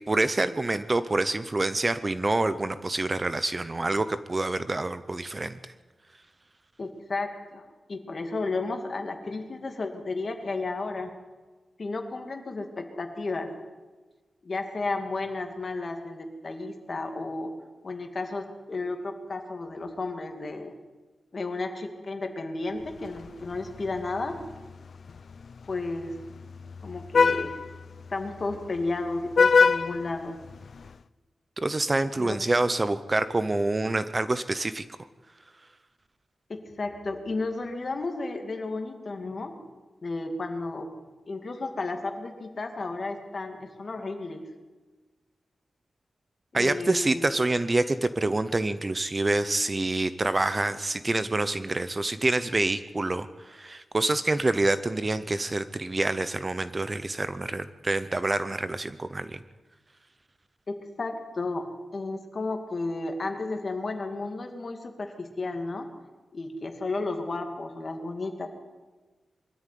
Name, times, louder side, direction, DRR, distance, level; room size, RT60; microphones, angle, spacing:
voice 1, 0.1-5.6 31.6-34.8 46.5-59.4, right 2 dB, 25° right, 12 dB, 0.7 m, -27 dB
voice 2, 6.8-11.1 11.8-13.5 14.4-17.5 17.8-20.7 21.3-24.4 25.7-26.2 26.8-27.6 28.1-30.4 32.2-32.4 36.5-39.5 40.0-40.9 41.3-44.5 46.5-47.3 60.7-61.7 61.9-65.9 66.3-68.5, left 3 dB, 40° left, 4 dB, 2.5 m, -33 dB
Vehicle horn car horn honking, 22.8-31.0, left 5 dB, 60° left, 0.6 m, -28 dB
23.0 x 13.5 x 9.3 m, 1.3 s
wide cardioid pair, 155°, 0 cm